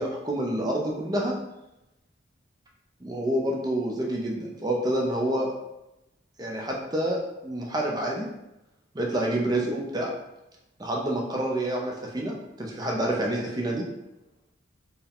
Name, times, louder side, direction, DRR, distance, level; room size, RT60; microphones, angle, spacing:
voice 1, 0.0-1.3 3.0-5.5 6.4-8.3 8.9-10.1 10.8-13.8, right 1 dB, 20° right, -1 dB, 0.5 m, -28 dB
4.6 x 2.2 x 3.4 m, 0.92 s
head